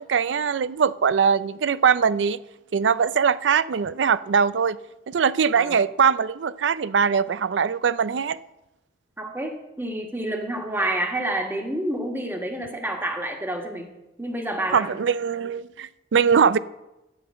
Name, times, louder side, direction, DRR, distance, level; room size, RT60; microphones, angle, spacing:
voice 1, 0.0-2.4 2.7-4.8 5.1-8.4 14.7-16.6, right 6 dB, 80° right, 17 dB, 0.4 m, -21 dB
voice 2, 9.2-13.9 14.2-15.0, right 1 dB, 10° right, 2 dB, 1.6 m, -28 dB
11.5 x 5.7 x 8.4 m, 0.95 s
head